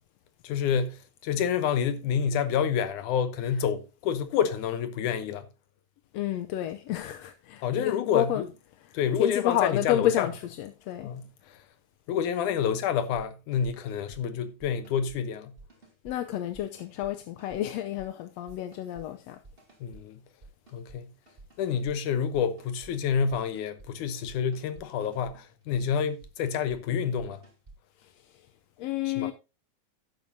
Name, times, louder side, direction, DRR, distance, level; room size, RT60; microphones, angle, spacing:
voice 1, 0.4-5.5 7.6-8.5 8.9-10.3 11.0-11.3 12.1-15.5 19.8-20.2 20.7-21.1 21.6-27.4 29.1-29.3, left 7 dB, 90° left, 2.5 m, -28 dB
voice 2, 6.1-8.4 9.2-11.1 16.0-19.4 28.8-29.3, left 12 dB, 70° left, 1.7 m, -30 dB
sound 1, 13.0-13.3 13.5-14.2 14.6-15.2 15.6-16.2 16.5-17.1 17.4-18.1 18.5-19.1 19.4-20.0 20.4-21.0 21.3-22.0 22.3-22.9 23.3-23.9 24.3-26.8 27.2-27.8, right 3 dB, 20° right, 2.9 m, -52 dB
12.5 x 9.6 x 2.8 m
omnidirectional pair, 3.4 m